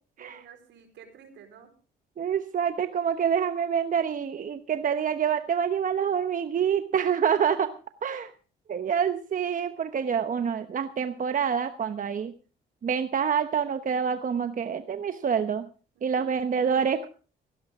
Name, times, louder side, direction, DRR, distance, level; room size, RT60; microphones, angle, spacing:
voice 1, 0.2-1.7 15.9-16.6, right 7 dB, 80° right, 6 dB, 4.5 m, -51 dB
voice 2, 2.2-7.7 8.0-8.3 8.7-12.3 12.8-15.7 16.0-17.1, right 7 dB, 45° right, 9 dB, 1.0 m, -27 dB
17.0 x 16.5 x 3.7 m, 0.37 s
cardioid pair, 85°, 19 cm